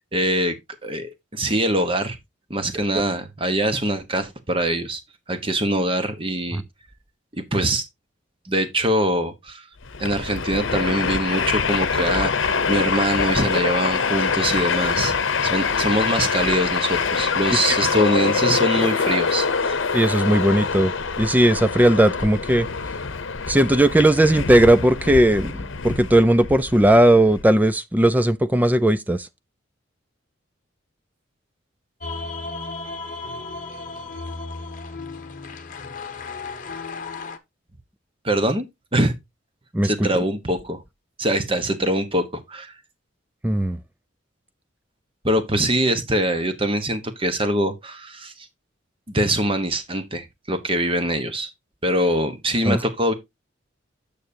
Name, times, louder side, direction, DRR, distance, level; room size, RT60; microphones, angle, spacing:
voice 1, 0.1-0.6 0.8-2.2 2.5-5.0 5.3-6.6 7.3-7.8 8.4-9.6 10.0-15.1 15.4-19.8 38.2-38.7 38.9-39.1 39.8-40.8 41.2-42.7 45.2-48.5 49.1-51.5 51.8-53.1, right 1 dB, 25° right, 1.2 m, -23 dB
Train, 9.8-27.4, left 5 dB, 75° left, 0.8 m, -24 dB
voice 2, 19.9-20.9 21.2-22.7 23.5-29.3 39.7-40.2 43.4-43.8 52.6-52.8, right 1 dB, 10° right, 0.4 m, -17 dB
sound 1, 32.0-37.4, left 3 dB, 40° left, 0.9 m, -34 dB
9.1 x 6.8 x 2.8 m
head